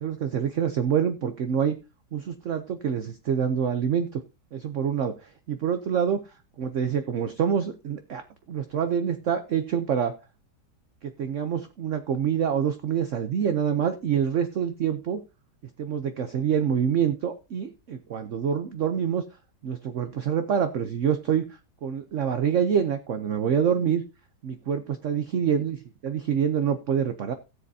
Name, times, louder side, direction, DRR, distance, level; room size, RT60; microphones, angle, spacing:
voice 1, 0.0-1.8 2.1-4.2 4.5-6.2 6.6-10.2 11.0-15.2 15.8-19.2 19.6-21.5 21.8-24.0 24.4-27.3, right 8 dB, 55° right, 9 dB, 0.9 m, -26 dB
16.5 x 7.6 x 2.7 m, 0.30 s
omnidirectional pair, 1.8 m